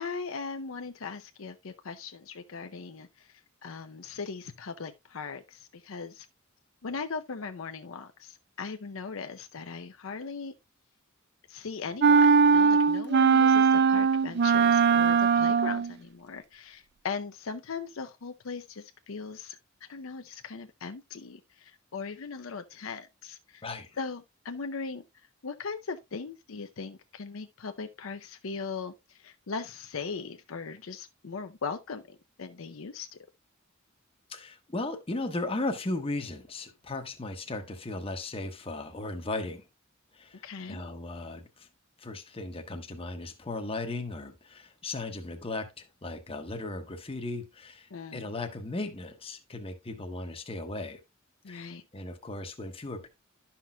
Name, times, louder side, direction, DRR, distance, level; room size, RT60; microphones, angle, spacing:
voice 1, 0.0-6.3 6.8-10.5 11.5-23.6 24.0-25.0 25.4-33.1 40.4-40.8 47.9-48.3 51.4-51.8, left 5 dB, 70° left, 0.6 m, -39 dB
sound 1, 12.0-15.9, right 5 dB, 55° right, 0.4 m, -20 dB
voice 2, 23.6-24.0 34.3-39.6 40.1-40.4 40.7-41.7 42.0-51.0 51.5-53.1, left 2 dB, 25° left, 1.0 m, -36 dB
11.5 x 5.8 x 2.2 m
head